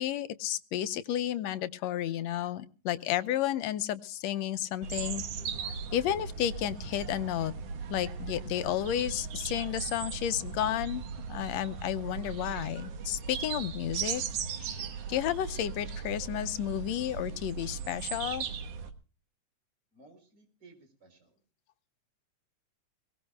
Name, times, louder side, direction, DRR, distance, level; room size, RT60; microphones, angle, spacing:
voice 1, 0.0-5.2 5.9-7.5 7.9-11.0 11.3-14.2 14.6-14.8 15.1-18.5, left 11 dB, 70° left, 12 dB, 1.9 m, -32 dB
sound 1, 4.8-18.9, right 6 dB, 60° right, 2.2 m, -38 dB
voice 2, 19.9-21.3, right 3 dB, 35° right, 5 dB, 4.8 m, -58 dB
22.0 x 18.5 x 2.3 m, 0.39 s
omnidirectional pair, 3.4 m